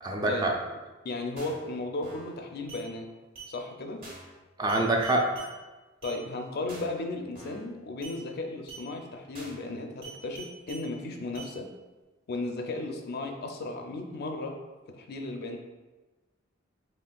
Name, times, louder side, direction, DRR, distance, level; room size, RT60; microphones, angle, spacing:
voice 1, 0.0-0.5 4.6-5.3, right 2 dB, 20° right, 1 dB, 0.4 m, -25 dB
voice 2, 1.0-3.1 3.5-4.0 6.0-11.7 12.3-14.6 14.9-15.6, left 2 dB, 55° left, 4 dB, 0.4 m, -35 dB
sound 1, 1.4-1.7 2.0-2.3 2.7-2.8 3.3-3.5 4.0-4.3 4.7-5.5 6.0-6.2 6.7-7.0 7.3-7.7 8.0-8.2 8.7-8.8 9.3-9.7 10.0-10.8 11.3-11.5, right 4 dB, 50° right, 1.2 m, -45 dB
4.3 x 3.1 x 2.3 m, 1.2 s
head